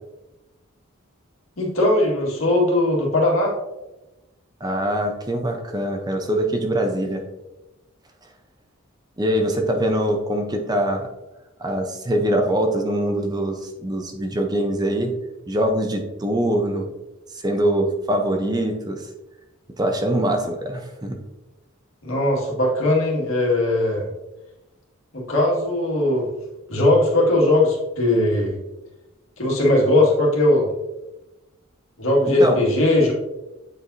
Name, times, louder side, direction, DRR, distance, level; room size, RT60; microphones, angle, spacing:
voice 1, 1.6-3.5 22.0-24.1 25.1-26.3 26.7-28.6 29.4-30.7 32.0-33.1, left 1 dB, 80° left, -2 dB, 1.9 m, -19 dB
voice 2, 4.6-7.2 9.2-11.1 11.6-15.1 15.5-16.9 17.3-19.0 19.8-21.2 32.3-32.6, right 1 dB, 20° right, 4 dB, 0.7 m, -23 dB
8.2 x 4.7 x 2.7 m, 1.0 s
head